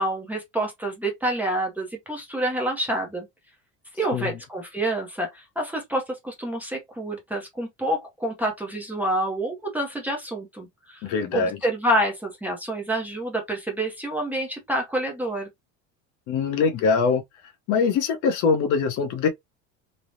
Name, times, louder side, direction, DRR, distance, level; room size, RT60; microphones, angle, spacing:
voice 1, 0.0-3.3 4.0-15.5, right 1 dB, 5° right, 0.5 m, -28 dB
voice 2, 11.0-11.6 16.3-17.2 17.7-19.3, left 5 dB, 60° left, 0.7 m, -22 dB
3.2 x 2.0 x 2.5 m
cardioid pair, 165°, 34 cm